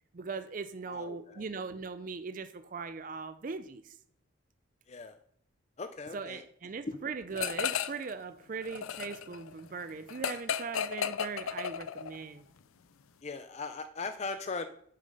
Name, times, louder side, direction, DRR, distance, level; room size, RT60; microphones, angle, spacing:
voice 1, 0.1-3.9 6.1-12.5, right 4 dB, 40° right, 10 dB, 0.4 m, -39 dB
voice 2, 0.8-1.4 4.9-5.2 5.8-6.4 6.8-7.0 13.2-14.7, left 3 dB, 30° left, 10 dB, 0.4 m, -39 dB
sound 1, 7.4-8.1 8.4-12.2, left 8 dB, 85° left, 0.5 m, -34 dB
7.4 x 6.7 x 5.3 m, 0.64 s
head